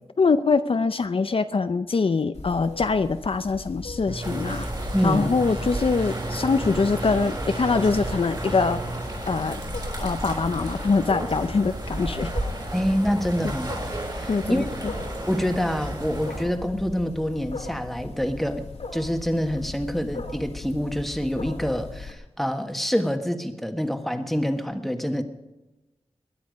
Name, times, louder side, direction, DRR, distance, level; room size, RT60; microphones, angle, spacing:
voice 1, 0.2-4.7 5.0-8.8 9.3-9.6 10.0-12.3 14.3-14.9, left 4 dB, 55° left, 10 dB, 0.6 m, -23 dB
Wild animals, 2.3-22.1, left 3 dB, 85° left, 2.3 m, -39 dB
sound 1, 4.1-9.1, right 2 dB, 55° right, 2.7 m, -36 dB
sound 2, 4.2-16.4, right 1 dB, 40° right, 4.8 m, -33 dB
voice 2, 4.9-5.4 9.5-9.6 12.7-13.7 14.1-14.7 15.3-18.6 18.9-25.2, equal, ahead, 6 dB, 1.5 m, -26 dB
21.0 x 10.0 x 5.2 m, 1.1 s
wide cardioid pair, 95°, 11 cm